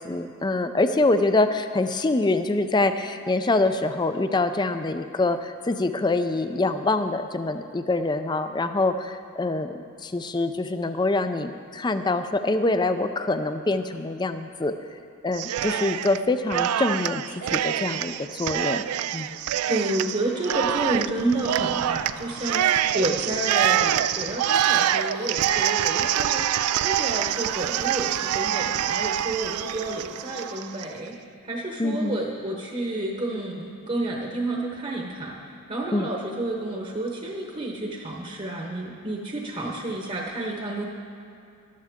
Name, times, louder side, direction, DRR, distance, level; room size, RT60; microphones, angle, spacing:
voice 1, 0.0-14.7 15.2-17.2 17.5-18.8 19.1-19.4 31.8-32.2 35.9-36.1, left 2 dB, 20° left, 9 dB, 0.4 m, -25 dB
Cheering, 15.3-16.2 16.5-30.9, right 10 dB, 85° right, 0.3 m, -25 dB
voice 2, 19.7-26.5 26.8-31.1 31.4-40.8, right 2 dB, 30° right, -1 dB, 1.0 m, -30 dB
14.0 x 12.5 x 3.6 m, 2.5 s
head